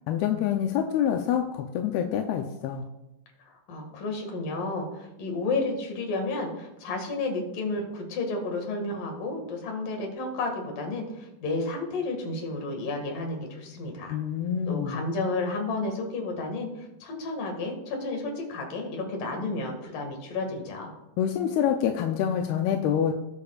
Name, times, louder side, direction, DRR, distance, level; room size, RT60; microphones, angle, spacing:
voice 1, 0.1-2.8 14.1-15.0 21.2-23.1, left 9 dB, 85° left, 4 dB, 2.6 m, -26 dB
voice 2, 3.5-14.2 14.7-20.9, left 3 dB, 65° left, 2 dB, 3.4 m, -32 dB
18.5 x 6.8 x 2.4 m, 0.91 s
omnidirectional pair, 4.3 m